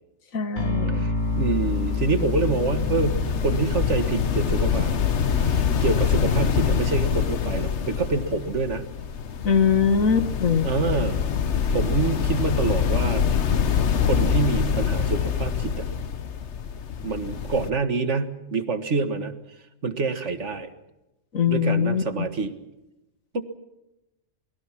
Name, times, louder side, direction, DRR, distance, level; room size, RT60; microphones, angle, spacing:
voice 1, 0.3-1.1 9.4-10.7 21.3-22.3, left 6 dB, 85° left, 10 dB, 1.9 m, -22 dB
sound 1, 0.6-6.6, left 3 dB, 35° left, 2.7 m, -29 dB
voice 2, 0.9-4.9 5.4-8.8 10.6-11.2 11.7-13.3 14.1-15.9 17.0-19.3 19.8-20.7 21.5-22.6 23.3-23.4, right 4 dB, 60° right, 9 dB, 2.0 m, -26 dB
sound 2, 1.2-17.7, left 7 dB, 60° left, 1.3 m, -25 dB
28.5 x 20.0 x 6.0 m, 0.96 s
omnidirectional pair, 1.4 m